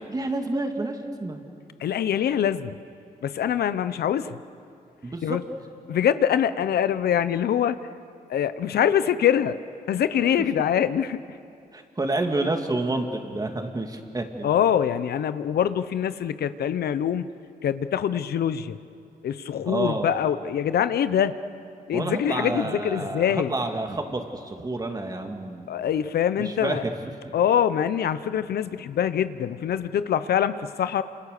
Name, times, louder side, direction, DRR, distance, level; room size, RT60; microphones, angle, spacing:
voice 1, 0.1-1.4 5.0-5.4 11.7-14.5 19.6-20.1 21.9-25.7 26.5-26.9, right 2 dB, 25° right, 4 dB, 2.3 m, -29 dB
voice 2, 1.8-2.8 3.2-4.4 5.2-5.4 5.9-7.8 8.3-9.6 9.9-11.2 14.4-17.3 17.6-18.8 19.2-21.3 21.9-23.5 25.7-26.8 27.3-31.0, left 9 dB, 85° left, 13 dB, 0.8 m, -24 dB
28.5 x 27.0 x 6.7 m, 2.5 s
wide cardioid pair, 120°, 16 cm